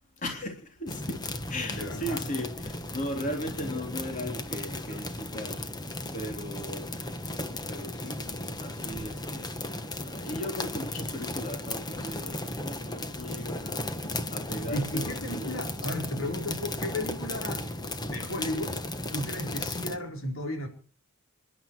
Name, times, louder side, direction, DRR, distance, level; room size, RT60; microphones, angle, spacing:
voice 1, 0.2-0.5 0.8-1.2 1.5-2.5 2.9-5.5 6.1-6.9 7.7-8.2 8.6-9.5 10.2-12.3 12.6-13.8 14.3-15.6, left 1 dB, 35° left, 3 dB, 3.2 m, -36 dB
sound 1, 0.9-20.0, left 2 dB, 20° left, 1.4 m, -35 dB
voice 2, 1.7-2.3 14.7-17.7 18.0-18.8 19.1-20.7, left 1 dB, 70° left, 3 dB, 4.2 m, -34 dB
28.0 x 11.5 x 4.5 m, 0.40 s
head